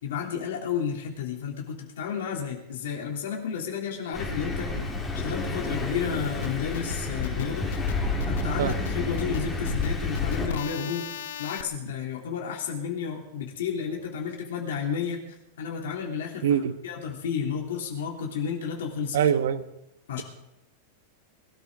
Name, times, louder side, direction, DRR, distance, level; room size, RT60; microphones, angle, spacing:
voice 1, 0.0-4.7 5.2-7.7 8.2-11.1 11.4-15.2 15.6-16.4 16.8-19.2 20.1-20.2, left 7 dB, 90° left, 0 dB, 3.1 m, -31 dB
Thunder, 4.1-10.5, left 2 dB, 10° left, 2.0 m, -30 dB
sound 1, 6.4-11.6, left 11 dB, 60° left, 0.7 m, -37 dB
voice 2, 16.4-16.7 19.1-19.7, right 8 dB, 75° right, 11 dB, 1.2 m, -24 dB
22.0 x 13.0 x 3.8 m, 0.84 s
supercardioid pair, 175°, 0 cm